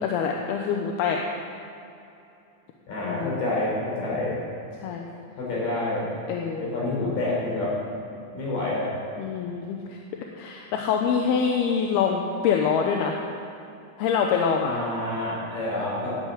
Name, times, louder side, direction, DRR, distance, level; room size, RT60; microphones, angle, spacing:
voice 1, 0.0-1.2 3.1-3.4 4.8-5.1 6.3-6.7 9.2-10.0 10.4-13.2 14.0-14.7, left 6 dB, 75° left, 1 dB, 2.6 m, -25 dB
voice 2, 2.9-4.4 5.4-6.1 6.6-7.7 8.3-8.9 14.6-16.1, left 2 dB, 50° left, -5 dB, 5.9 m, -28 dB
13.0 x 8.8 x 8.7 m, 2.7 s
omnidirectional pair, 4.9 m